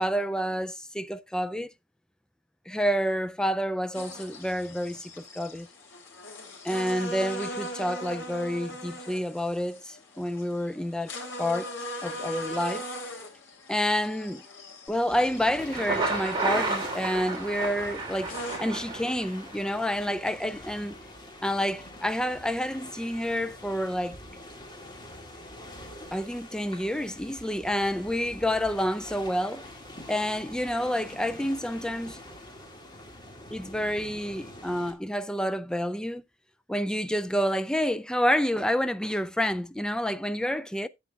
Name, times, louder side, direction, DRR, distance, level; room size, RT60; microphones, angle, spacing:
voice 1, 0.0-1.7 2.7-5.7 6.6-11.1 11.4-11.7 12.0-12.8 13.7-14.4 14.9-21.0 21.4-24.2 26.1-29.6 30.1-32.2 33.5-36.2 36.7-40.9, equal, 5° left, 0.4 m, -29 dB
sound 1, 3.9-18.6, equal, 85° left, 3.1 m, -40 dB
sound 2, 15.1-34.9, left 1 dB, 25° left, 2.1 m, -45 dB
Thunder, 15.6-19.5, right 3 dB, 25° right, 2.9 m, -31 dB
11.0 x 8.1 x 2.4 m
head